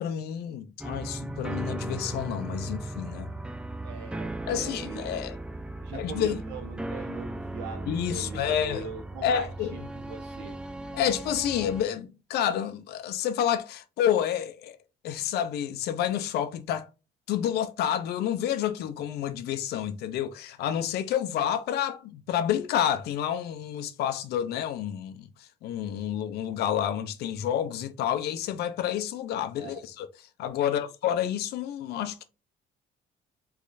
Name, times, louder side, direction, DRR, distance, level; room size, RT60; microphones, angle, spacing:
voice 1, 0.0-3.3 4.5-5.4 5.9-6.4 7.9-8.8 9.2-9.7 10.9-14.8 15.0-16.9 17.3-30.1 30.4-32.2, left 10 dB, 75° left, 0.6 m, -29 dB
sound 1, 0.8-11.8, right 1 dB, 5° right, 0.3 m, -37 dB
voice 2, 3.8-5.2 5.8-10.6 29.6-29.8 30.6-30.8, right 5 dB, 90° right, 1.2 m, -42 dB
3.6 x 3.2 x 2.5 m
cardioid pair, 110°, 17 cm